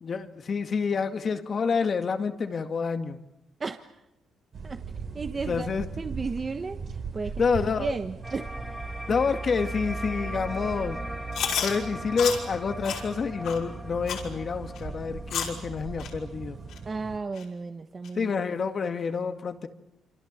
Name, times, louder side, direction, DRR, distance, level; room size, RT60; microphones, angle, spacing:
voice 1, 0.0-3.2 5.4-5.9 7.4-8.0 9.1-11.0 11.6-16.6 18.2-19.7, left 5 dB, 45° left, 7 dB, 2.1 m, -28 dB
sound 1, 4.5-17.2, right 5 dB, 50° right, 4.1 m, -40 dB
voice 2, 5.1-5.7 6.0-6.8 7.1-7.4 7.8-8.5 16.8-18.3, right 4 dB, 35° right, 7 dB, 1.3 m, -33 dB
sound 2, 8.2-17.2, right 1 dB, ahead, 3.5 m, -38 dB
Chewing mastication, 11.3-11.7 12.2-12.4 12.8-13.0 13.4-13.6 14.1-14.3 14.8-14.9 15.3-15.6 16.0-16.1 16.7-16.8 17.4-17.5 18.0-18.1, left 8 dB, 80° left, 5.8 m, -30 dB
27.5 x 26.0 x 7.6 m, 0.90 s
cardioid pair, 90°, 0 cm